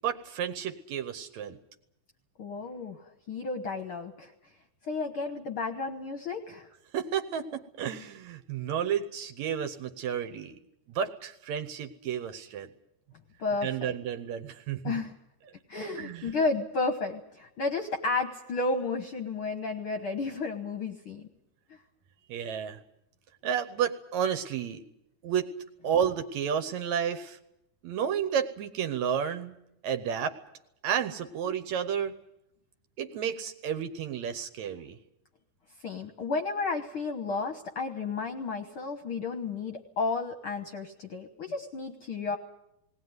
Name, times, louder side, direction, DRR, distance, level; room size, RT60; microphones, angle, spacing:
voice 1, 0.0-1.6 6.9-10.6 11.0-12.7 13.6-15.0 16.0-16.3 22.3-22.8 23.4-24.8 25.2-25.5 25.8-27.4 27.8-29.5 29.8-30.4 30.8-32.2 33.0-35.0, right 8 dB, 70° right, 10 dB, 2.0 m, -31 dB
voice 2, 2.4-4.3 4.8-6.7 13.4-13.9 14.8-15.1 15.7-21.3 35.8-42.4, left 3 dB, 60° left, 6 dB, 1.5 m, -32 dB
19.0 x 18.5 x 9.5 m, 0.83 s
omnidirectional pair, 3.8 m